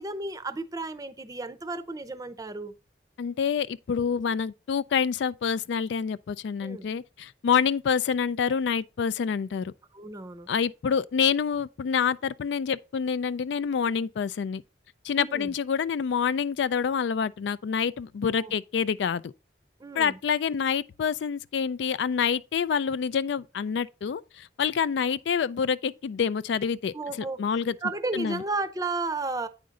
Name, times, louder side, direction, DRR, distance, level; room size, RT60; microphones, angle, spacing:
voice 1, 0.0-2.7 6.6-6.9 9.9-10.5 15.2-15.5 18.4-18.5 19.8-20.2 26.9-27.4 27.8-29.5, right 3 dB, 20° right, 0.6 m, -33 dB
voice 2, 3.2-9.7 10.5-14.6 15.0-19.3 19.9-27.8 28.1-28.4, left 6 dB, 75° left, 0.3 m, -27 dB
8.6 x 5.2 x 3.7 m
head